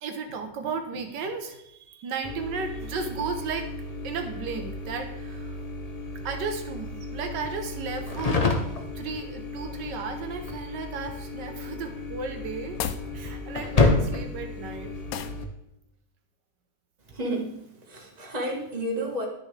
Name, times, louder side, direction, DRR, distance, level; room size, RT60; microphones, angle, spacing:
voice 1, 0.0-3.7 4.0-5.6 6.2-8.4 8.9-12.8 13.1-14.9, right 5 dB, 80° right, 5 dB, 1.5 m, -34 dB
sound 1, 2.2-15.4, left 3 dB, 45° left, 0.5 m, -31 dB
sound 2, 12.7-13.1 15.1-15.4, left 9 dB, 70° left, 0.9 m, -32 dB
voice 2, 17.1-19.3, right 1 dB, 25° right, 0 dB, 1.5 m, -31 dB
11.0 x 6.4 x 3.3 m, 0.84 s
omnidirectional pair, 1.9 m